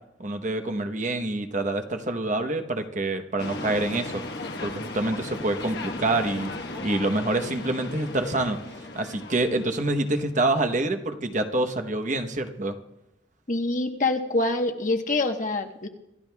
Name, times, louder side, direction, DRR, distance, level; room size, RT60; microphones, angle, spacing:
voice 1, 0.2-4.2 4.6-6.5 6.8-8.6 8.9-12.8, right 2 dB, 40° right, 6 dB, 0.9 m, -26 dB
sound 1, 3.4-10.4, left 2 dB, 60° left, 1.3 m, -37 dB
voice 2, 13.5-15.9, left 2 dB, 45° left, 4 dB, 1.1 m, -25 dB
26.5 x 13.5 x 2.3 m, 0.87 s
head